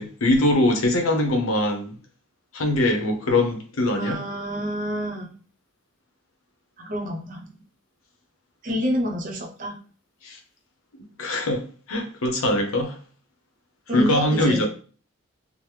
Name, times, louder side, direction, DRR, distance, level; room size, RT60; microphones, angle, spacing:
voice 1, 0.0-1.9 2.5-4.2 10.2-10.4 11.2-13.0 13.9-14.7, left 1 dB, 80° left, 0.7 m, -22 dB
voice 2, 4.0-5.4 6.8-7.6 8.6-9.8 13.9-14.6, equal, 40° right, 0.6 m, -28 dB
3.0 x 2.0 x 3.2 m
head